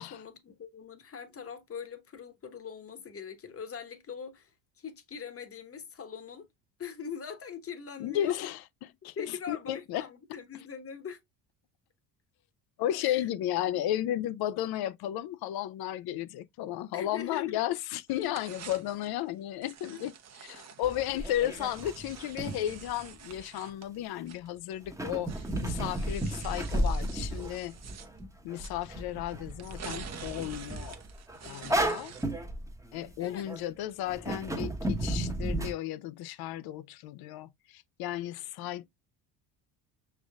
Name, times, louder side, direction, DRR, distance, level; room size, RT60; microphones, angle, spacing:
voice 1, 0.0-4.5 4.8-6.5 6.8-8.5 9.2-11.2 13.0-13.3 13.7-13.8 16.9-17.6 19.9-20.1 31.4-31.8 33.2-33.5 38.8-38.9, left 7 dB, 30° left, 1.1 m, -42 dB
voice 2, 8.0-8.6 9.0-10.1 12.8-20.1 20.4-27.8 28.4-31.0 31.4-32.1 32.9-38.9, left 12 dB, 55° left, 0.5 m, -34 dB
sound 1, 18.1-19.2 19.6-24.7 25.2-28.1 28.6-28.8 29.5-32.4, right 7 dB, 35° right, 0.9 m, -48 dB
sound 2, 20.8-23.4 24.8-33.6 34.1-35.7, right 1 dB, 5° right, 0.9 m, -34 dB
6.0 x 3.4 x 2.3 m
hypercardioid pair, 70°, 47 cm